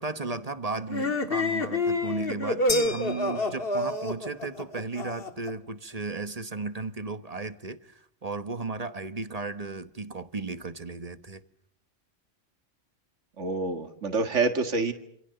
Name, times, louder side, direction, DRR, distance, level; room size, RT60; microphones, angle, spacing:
voice 1, 0.0-11.4, right 3 dB, 35° right, 1.2 m, -35 dB
sound 1, 0.9-5.5, left 2 dB, 50° left, 2.1 m, -28 dB
sound 2, 2.7-4.1, left 3 dB, 35° left, 2.2 m, -35 dB
voice 2, 13.4-14.9, right 3 dB, 80° right, 2.2 m, -27 dB
27.5 x 27.5 x 6.9 m
omnidirectional pair, 1.2 m